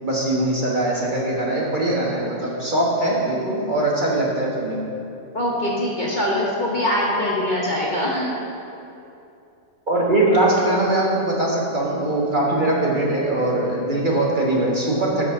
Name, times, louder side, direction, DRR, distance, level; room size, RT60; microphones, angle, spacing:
voice 1, 0.0-4.8 9.9-15.2, right 1 dB, 35° right, -4 dB, 1.3 m, -21 dB
voice 2, 5.3-8.3, left 1 dB, 35° left, -4 dB, 1.1 m, -23 dB
8.7 x 6.1 x 5.9 m, 2.7 s
omnidirectional pair, 1.5 m